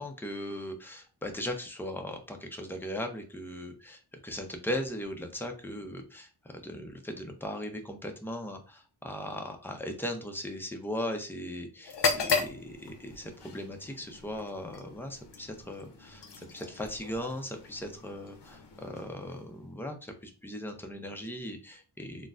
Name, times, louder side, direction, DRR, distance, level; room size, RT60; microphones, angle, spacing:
voice 1, 0.0-22.3, left 1 dB, 5° left, 4 dB, 0.5 m, -38 dB
sound 1, 11.8-19.7, left 5 dB, 65° left, 0.7 m, -36 dB
3.8 x 2.1 x 2.4 m, 0.35 s
wide cardioid pair, 80°, 44 cm